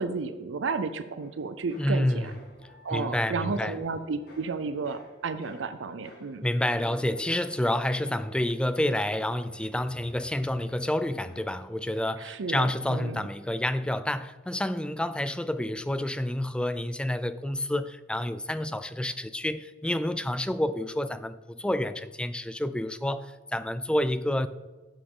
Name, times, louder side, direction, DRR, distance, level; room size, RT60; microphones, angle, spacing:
voice 1, 0.0-2.3 2.8-6.5 12.2-13.2, right 4 dB, 85° right, 0.5 m, -32 dB
sound 1, 1.2-12.8 13.1-13.6, left 1 dB, 55° left, 2.3 m, -53 dB
voice 2, 1.8-2.3 2.9-3.8 6.4-24.5, left 1 dB, 5° left, 0.3 m, -29 dB
11.0 x 7.1 x 3.7 m
head